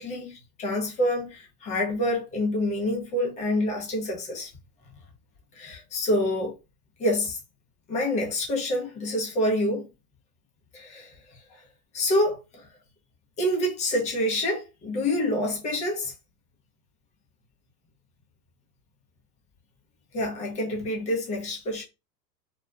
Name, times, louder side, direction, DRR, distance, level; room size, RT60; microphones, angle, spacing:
voice 1, 0.0-4.5 5.5-6.5 7.0-7.4 7.9-9.9 10.7-11.6 11.9-12.7 13.4-16.1 20.1-21.8, left 1 dB, 15° left, 0.5 m, -27 dB
2.5 x 2.2 x 2.2 m
hypercardioid pair, 105°, 49 cm